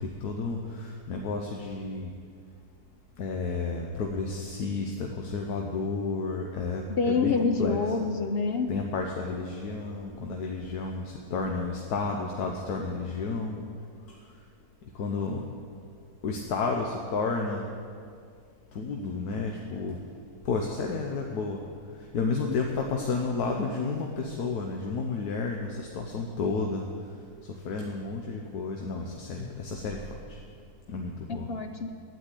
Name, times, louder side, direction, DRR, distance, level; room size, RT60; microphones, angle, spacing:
voice 1, 0.0-2.1 3.2-7.8 8.7-13.7 14.9-15.4 16.2-17.6 18.7-20.0 20.4-21.6 22.1-26.8 27.6-30.4 30.9-31.5, left 4 dB, 75° left, 1 dB, 1.4 m, -31 dB
voice 2, 6.9-8.8 31.3-31.9, left 4 dB, 60° left, 6 dB, 0.6 m, -27 dB
10.0 x 9.3 x 8.3 m, 2.2 s
omnidirectional pair, 1.7 m